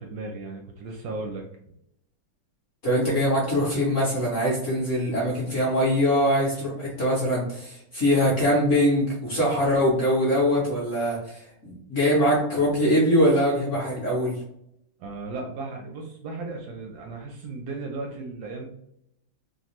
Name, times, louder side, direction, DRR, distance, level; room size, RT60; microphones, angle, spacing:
voice 1, 0.0-1.4 15.0-18.7, right 3 dB, 75° right, 1 dB, 0.9 m, -35 dB
voice 2, 2.8-14.4, equal, 50° left, -5 dB, 0.9 m, -23 dB
3.4 x 2.3 x 2.9 m, 0.78 s
omnidirectional pair, 2.2 m